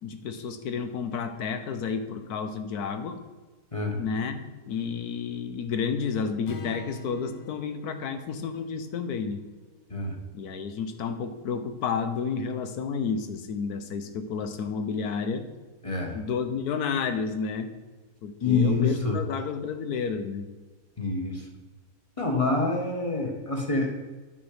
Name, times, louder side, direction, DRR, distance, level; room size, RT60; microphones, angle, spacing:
voice 1, 0.0-3.2 4.0-9.4 10.3-15.5 16.1-17.7 18.2-20.5, left 6 dB, 80° left, 8 dB, 1.4 m, -31 dB
Strum, 6.5-10.8, left 3 dB, 65° left, 1.3 m, -45 dB
voice 2, 15.8-16.2 18.4-19.2 21.0-21.5 22.2-23.9, left 3 dB, 25° left, 1 dB, 1.3 m, -26 dB
9.1 x 6.2 x 5.0 m, 1.3 s
omnidirectional pair, 1.6 m